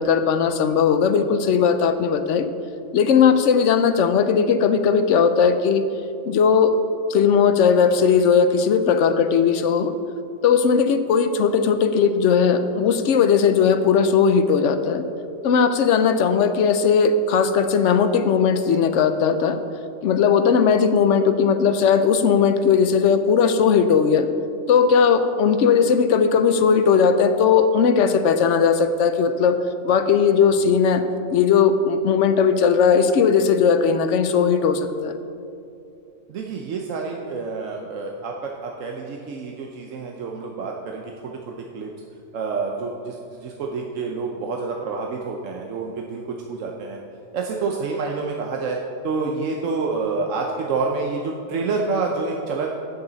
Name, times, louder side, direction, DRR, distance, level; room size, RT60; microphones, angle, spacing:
voice 1, 0.0-2.5 2.9-5.8 6.2-6.7 7.1-9.9 10.4-15.0 15.4-19.6 20.0-24.3 24.7-29.6 29.8-31.0 31.3-35.1, left 6 dB, 70° left, 9 dB, 0.9 m, -18 dB
voice 2, 36.3-41.9 42.3-47.0 47.3-48.8 49.0-52.7, right 4 dB, 75° right, 0 dB, 1.1 m, -28 dB
10.5 x 8.4 x 4.0 m, 2.6 s
omnidirectional pair, 1.3 m